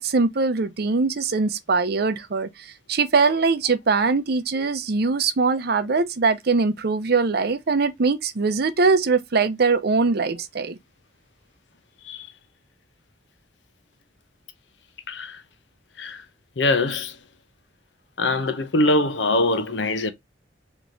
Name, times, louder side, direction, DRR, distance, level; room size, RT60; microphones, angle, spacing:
voice 1, 0.0-10.8, right 4 dB, 60° right, 0.6 m, -22 dB
voice 2, 15.1-15.4 16.0-16.2 16.6-17.2 18.2-20.1, left 2 dB, 85° left, 0.8 m, -23 dB
3.5 x 3.0 x 3.8 m
head